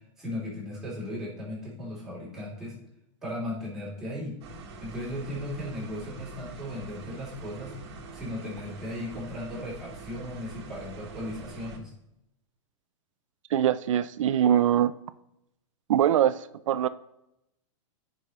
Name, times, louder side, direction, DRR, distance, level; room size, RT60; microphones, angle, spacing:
voice 1, 0.2-2.8 3.2-4.4 4.8-7.8 8.1-11.9, left 1 dB, ahead, 3.0 m, -36 dB
sound 1, 4.4-11.8, right 3 dB, 55° right, 1.5 m, -44 dB
voice 2, 13.5-14.9 15.9-16.9, right 10 dB, 80° right, 0.5 m, -23 dB
13.5 x 5.5 x 3.0 m
supercardioid pair, 170°, 16 cm